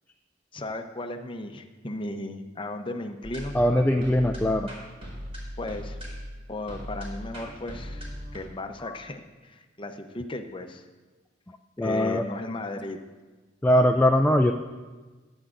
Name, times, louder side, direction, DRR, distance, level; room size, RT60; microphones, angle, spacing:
voice 1, 0.5-3.5 5.6-6.0 6.5-10.9 11.8-13.0, left 1 dB, 25° left, 6 dB, 0.7 m, -35 dB
sound 1, 3.2-8.4, equal, 30° right, 3.5 m, -39 dB
voice 2, 3.5-4.7 8.8-9.0 11.8-12.2 13.6-14.5, left 1 dB, 10° left, 3 dB, 0.3 m, -21 dB
22.0 x 8.9 x 2.5 m, 1.3 s
head